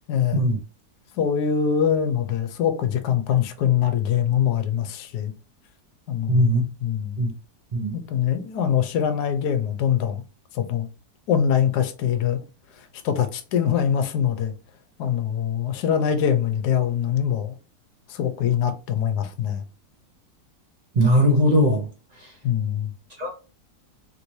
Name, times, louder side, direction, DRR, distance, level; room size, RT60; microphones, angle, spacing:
voice 1, 0.1-0.4 1.2-5.3 6.1-7.2 7.9-10.2 10.5-10.9 11.3-12.4 13.0-14.5 15.0-17.6 18.1-19.6 22.4-22.9, left 8 dB, 75° left, 1.2 m, -23 dB
voice 2, 6.3-6.6 7.2-7.3 7.7-8.0 21.0-21.9 23.2-23.3, equal, 60° right, 0.4 m, -19 dB
3.2 x 3.1 x 2.6 m
omnidirectional pair, 1.8 m